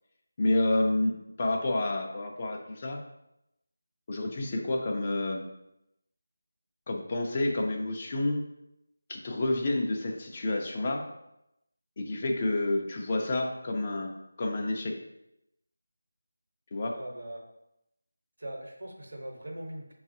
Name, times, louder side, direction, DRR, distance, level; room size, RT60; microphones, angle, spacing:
voice 1, 0.4-3.0 4.1-5.5 6.9-8.4 9.1-11.0 12.0-14.1 14.4-15.0 16.7-17.0, left 2 dB, 35° left, 1 dB, 0.5 m, -29 dB
voice 2, 16.9-17.4 18.4-19.9, right 1 dB, 70° right, 1 dB, 1.0 m, -40 dB
5.7 x 2.4 x 2.7 m, 0.85 s
figure-of-eight pair, 165°, 0 cm